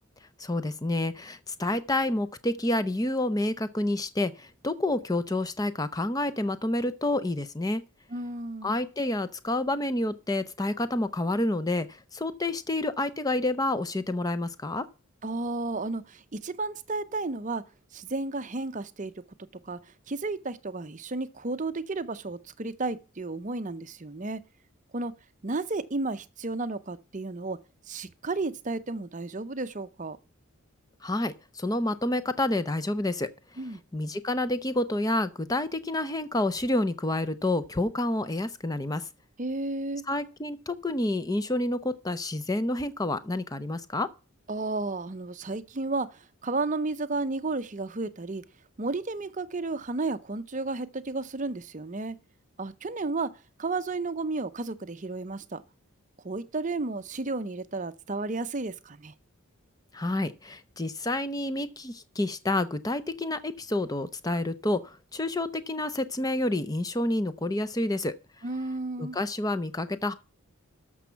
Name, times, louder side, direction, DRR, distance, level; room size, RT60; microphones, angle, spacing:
voice 1, 0.4-7.8 8.6-14.8 31.0-33.3 33.9-39.0 40.1-44.1 59.9-68.1 69.0-70.1, left 1 dB, 15° left, 0.6 m, -29 dB
voice 2, 8.1-8.8 15.2-17.6 17.9-19.1 19.6-19.8 20.1-24.4 24.9-25.1 25.4-27.6 27.9-30.2 33.6-33.8 39.4-40.0 44.5-48.4 48.8-52.2 52.6-53.3 53.6-55.6 56.2-59.1 68.4-69.2, right 3 dB, 35° right, 0.6 m, -32 dB
13.5 x 6.2 x 5.7 m
head